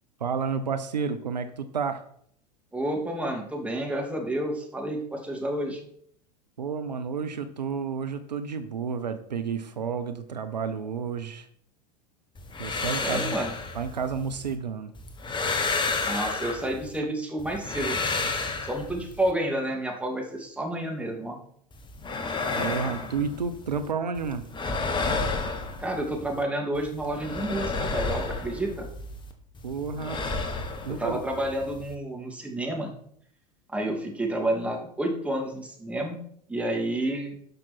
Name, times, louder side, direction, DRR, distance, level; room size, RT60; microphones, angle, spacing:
voice 1, 0.2-2.0 6.6-11.5 12.6-13.4 13.7-14.9 22.6-24.4 29.6-30.2 30.8-31.2, right 6 dB, 80° right, 10 dB, 0.8 m, -31 dB
voice 2, 2.7-5.8 13.0-13.5 16.0-18.0 18.6-21.4 25.8-28.9 30.9-32.9 33.7-36.2 36.5-37.4, right 1 dB, 5° right, 1 dB, 2.6 m, -30 dB
sound 1, 12.4-14.5 15.0-17.0 17.4-19.3 21.7-23.9 24.2-26.4 26.7-29.3 29.6-31.9, left 3 dB, 20° left, 1.5 m, -31 dB
12.0 x 6.0 x 4.5 m, 0.65 s
figure-of-eight pair, 85°, 21 cm